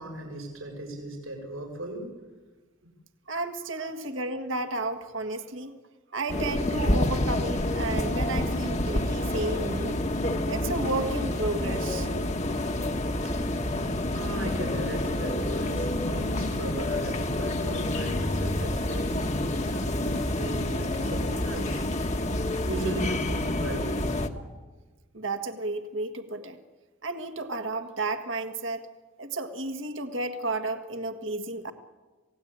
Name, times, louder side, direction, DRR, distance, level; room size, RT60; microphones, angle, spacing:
voice 1, 0.0-2.1 13.2-21.9 22.6-24.1, right 1 dB, 80° right, 2 dB, 6.5 m, -37 dB
voice 2, 3.3-5.7 6.1-10.0 10.5-12.1 25.1-26.6 27.0-28.9 29.2-31.7, right 2 dB, 60° right, 7 dB, 1.7 m, -32 dB
sound 1, 6.3-24.3, left 1 dB, 30° left, 1.3 m, -28 dB
27.5 x 18.0 x 8.8 m, 1.3 s
head